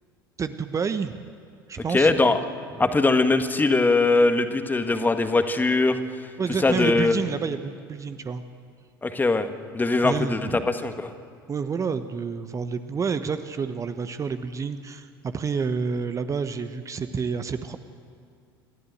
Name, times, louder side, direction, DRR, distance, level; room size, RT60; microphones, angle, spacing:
voice 1, 0.4-1.2 1.7-2.1 2.8-2.9 6.4-8.4 10.0-10.7 11.5-17.8, right 5 dB, 25° right, 10 dB, 1.1 m, -29 dB
voice 2, 1.9-2.4 2.8-6.0 6.6-7.2 9.0-9.5 9.7-11.1, left 3 dB, 15° left, 8 dB, 1.7 m, -21 dB
27.0 x 14.0 x 8.0 m, 2.2 s
figure-of-eight pair, 70°, 12 cm